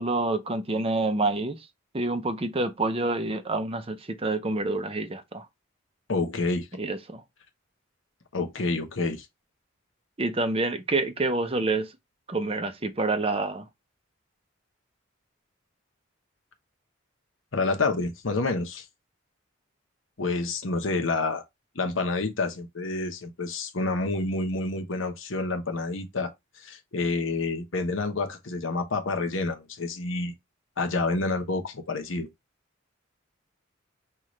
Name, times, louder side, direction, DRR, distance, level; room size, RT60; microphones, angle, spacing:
voice 1, 0.0-1.6 1.9-5.5 6.8-7.2 10.2-11.9 12.3-13.7, right 2 dB, 30° right, 0.6 m, -27 dB
voice 2, 6.1-6.7 8.3-9.3 17.5-18.8 20.2-21.4 21.7-26.3 26.6-30.3 30.8-32.3, left 3 dB, 75° left, 1.0 m, -28 dB
5.7 x 2.4 x 3.1 m
head